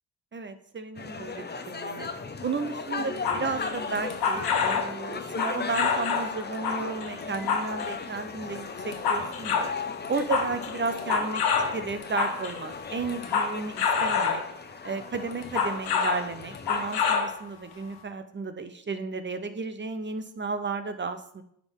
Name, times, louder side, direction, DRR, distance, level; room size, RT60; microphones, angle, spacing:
voice 1, 0.3-2.1 2.4-9.7 10.1-14.4 14.8-21.4, right 4 dB, 30° right, 9 dB, 0.7 m, -33 dB
sound 1, 1.0-17.2, left 4 dB, 25° left, 0.7 m, -37 dB
sound 2, 3.2-4.9 5.3-6.3 6.6-8.1 8.6-9.7 10.0-12.6 13.1-14.5 15.3-16.3 16.5-17.3 17.7-17.8, left 6 dB, 80° left, 1.1 m, -27 dB
10.5 x 3.7 x 3.6 m, 0.69 s
cardioid pair, 65°, 37 cm